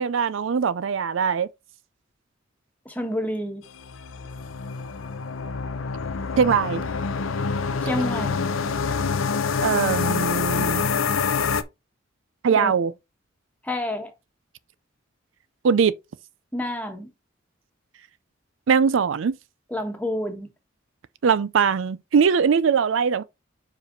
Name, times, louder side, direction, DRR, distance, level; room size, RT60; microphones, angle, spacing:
voice 1, 0.0-1.5 6.4-6.8 9.6-10.8 12.4-12.9 15.6-16.0 18.7-19.4 21.2-23.2, right 6 dB, 70° right, 0.4 m, -21 dB
voice 2, 2.8-3.6 7.8-8.5 12.5-12.7 13.6-14.1 16.5-17.1 19.7-20.5, left 1 dB, 10° left, 1.3 m, -29 dB
sound 1, 3.8-11.6, left 5 dB, 85° left, 0.6 m, -26 dB
5.1 x 4.9 x 4.4 m
head